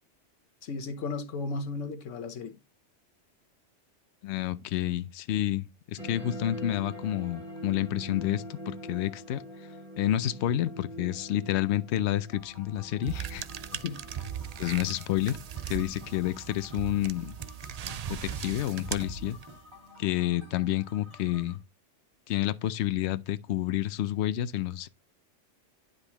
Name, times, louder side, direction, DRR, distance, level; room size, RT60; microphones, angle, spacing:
voice 1, 0.6-2.6 13.8-14.0, left 4 dB, 90° left, 1.3 m, -35 dB
voice 2, 4.2-9.4 10.0-13.4 14.6-15.4 15.7-17.4 18.1-19.4 20.0-21.6 22.3-24.9, left 13 dB, 70° left, 0.8 m, -29 dB
sound 1, 6.0-17.0, equal, 45° right, 4.3 m, -44 dB
sound 2, 12.3-21.6, equal, 25° right, 1.9 m, -48 dB
sound 3, 13.1-19.7, right 9 dB, 85° right, 0.3 m, -39 dB
9.9 x 5.2 x 2.9 m
omnidirectional pair, 1.2 m